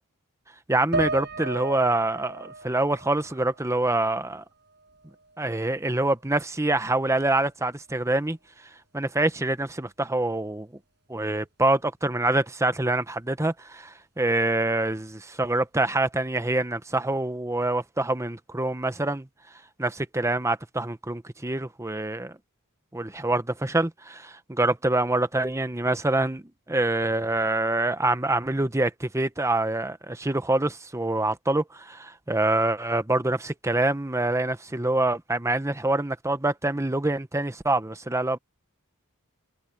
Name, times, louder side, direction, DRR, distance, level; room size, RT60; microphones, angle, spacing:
voice 1, 0.7-4.4 5.4-8.4 8.9-10.7 11.1-19.3 19.8-22.3 22.9-26.4 26.7-38.4, right 2 dB, 15° right, 1.0 m, -25 dB
sound 1, 0.9-4.3 4.7-5.8, right 2 dB, 50° right, 6.2 m, -35 dB
head